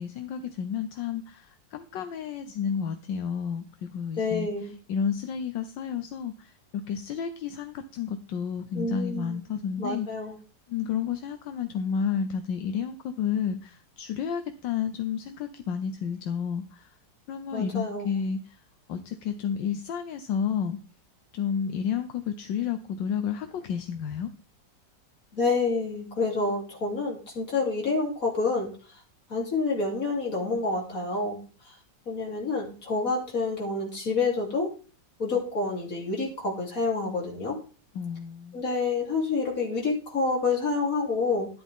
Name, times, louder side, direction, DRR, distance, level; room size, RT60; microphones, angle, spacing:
voice 1, 0.0-4.5 4.9-10.1 10.7-16.9 17.3-18.6 18.9-20.8 21.3-24.3 37.9-38.6, left 7 dB, 75° left, 8 dB, 1.5 m, -31 dB
voice 2, 4.2-4.7 8.7-9.4 9.8-10.3 17.5-18.2 25.3-29.0 29.3-31.7 32.1-34.7 35.2-37.6 38.5-41.5, left 3 dB, 45° left, -2 dB, 3.9 m, -28 dB
13.0 x 10.5 x 3.7 m, 0.37 s
omnidirectional pair, 2.0 m